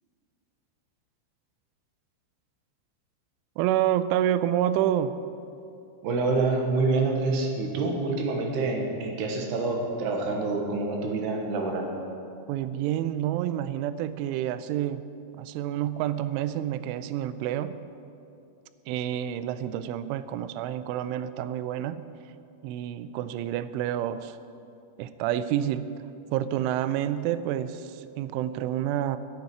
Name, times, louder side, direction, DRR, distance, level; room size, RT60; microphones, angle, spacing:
voice 1, 3.6-5.1 12.5-15.0 15.4-17.7 18.9-22.0 22.6-24.3 25.0-25.9 26.3-29.2, right 11 dB, 85° right, 13 dB, 3.1 m, -28 dB
voice 2, 6.0-11.9, right 3 dB, 70° right, 1 dB, 3.1 m, -27 dB
10.5 x 9.8 x 9.4 m, 2.6 s
omnidirectional pair, 5.5 m